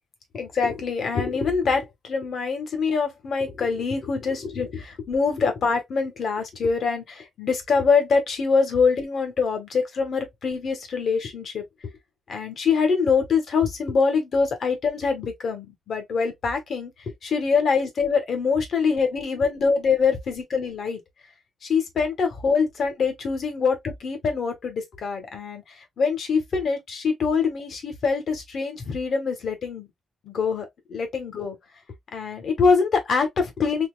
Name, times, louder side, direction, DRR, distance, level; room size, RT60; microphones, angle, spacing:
voice 1, 0.3-11.9 12.3-21.0 21.6-29.9 30.2-31.6 32.1-33.9, left 5 dB, 60° left, 1.6 m, -24 dB
4.3 x 3.1 x 2.3 m
cardioid pair, 105°, 0 cm